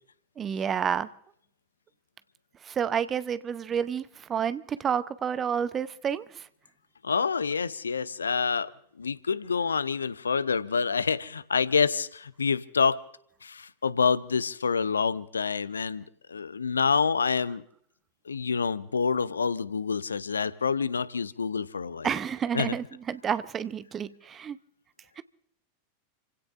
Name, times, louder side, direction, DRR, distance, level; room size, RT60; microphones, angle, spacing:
voice 1, 0.4-1.1 2.6-6.5 22.0-24.6 25.2-25.3, right 8 dB, 25° right, 0.8 m, -30 dB
voice 2, 7.0-13.0 13.4-17.6 18.3-22.1 22.5-22.8, left 5 dB, 75° left, 0.7 m, -27 dB
29.5 x 16.5 x 2.6 m
figure-of-eight pair, 90°, 0 cm